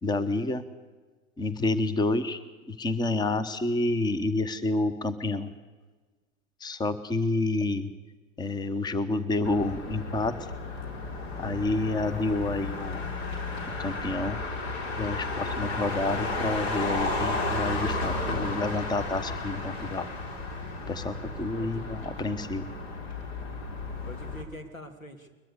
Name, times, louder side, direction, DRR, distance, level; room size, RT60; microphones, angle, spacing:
voice 1, 0.0-0.6 1.4-2.4 2.7-5.5 6.6-7.9 8.4-10.5 11.4-13.0 13.8-14.4 15.0-20.1 20.9-22.7, left 2 dB, 10° left, 14 dB, 1.1 m, -29 dB
Motor vehicle (road), 9.4-24.4, left 2 dB, 50° left, 3.8 m, -33 dB
voice 2, 24.0-25.3, equal, 85° left, 5 dB, 2.9 m, -45 dB
22.5 x 21.5 x 6.9 m, 1.3 s
figure-of-eight pair, 90°, 40 cm